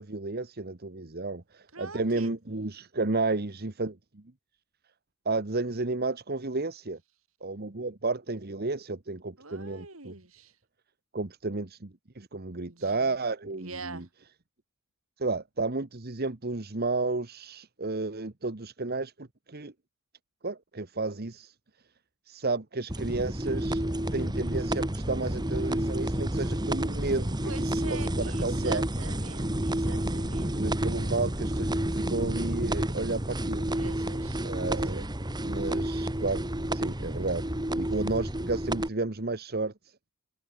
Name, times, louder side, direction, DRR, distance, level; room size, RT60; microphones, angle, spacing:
voice 1, 0.0-4.2 5.2-7.0 7.4-10.1 11.1-14.0 15.2-19.7 20.4-21.5 22.3-23.8 24.1-28.8 30.4-33.7 34.4-35.1 35.4-36.4 36.7-37.4 37.7-39.9, right 3 dB, 45° right, 1.3 m, -32 dB
voice 2, 1.7-2.3 9.4-10.5 12.6-13.1 13.6-14.1 27.4-30.9 33.7-35.1, right 3 dB, 70° right, 5.4 m, -44 dB
sound 1, 22.9-38.9, right 1 dB, 20° right, 1.9 m, -30 dB
head